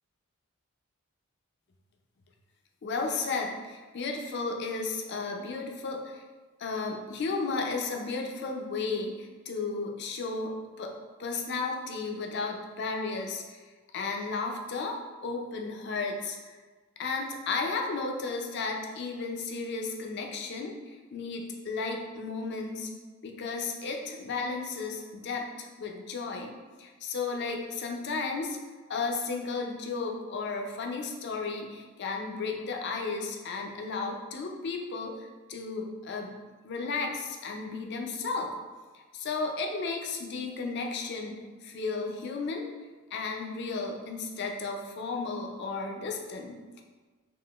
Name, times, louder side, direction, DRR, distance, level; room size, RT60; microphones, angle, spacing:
voice 1, 2.8-6.2 6.6-10.9 11.2-13.6 13.9-16.6 17.0-22.9 23.2-28.6 28.9-36.3 36.6-38.5 39.1-42.7 43.1-46.8, left 4 dB, 50° left, 1 dB, 0.4 m, -34 dB
3.6 x 2.6 x 2.3 m, 1.3 s
head